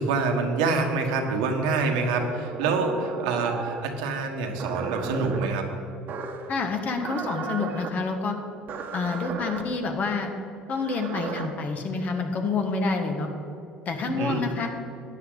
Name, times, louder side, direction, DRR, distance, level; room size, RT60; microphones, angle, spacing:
voice 1, 0.0-5.7 14.1-14.4, right 4 dB, 85° right, 3 dB, 1.4 m, -26 dB
sound 1, 2.2-3.9 4.6-5.5 6.1-6.5 7.0-7.9 8.7-9.6 10.7-11.5, right 5 dB, 55° right, 1.2 m, -34 dB
voice 2, 6.5-8.4 8.9-10.3 10.7-13.3 13.8-14.7, left 4 dB, 45° left, 4 dB, 1.6 m, -28 dB
12.5 x 9.4 x 4.0 m, 2.8 s
supercardioid pair, 90°, 4 cm